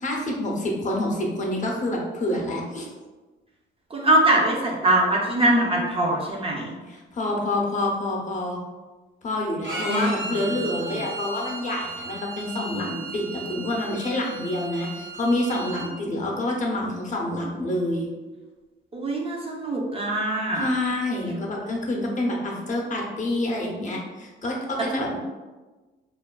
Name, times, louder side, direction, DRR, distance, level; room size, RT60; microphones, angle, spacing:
voice 1, 0.0-2.9 6.9-8.6 9.2-18.1 20.5-25.2, left 1 dB, 40° left, -1 dB, 0.6 m, -27 dB
voice 2, 3.9-6.7 9.8-10.2 10.7-11.0 18.9-20.7, right 1 dB, 30° right, -2 dB, 0.5 m, -23 dB
Bowed string instrument, 9.6-15.9, right 3 dB, 65° right, 0.9 m, -35 dB
2.5 x 2.3 x 2.2 m, 1.2 s
cardioid pair, 90°, 20 cm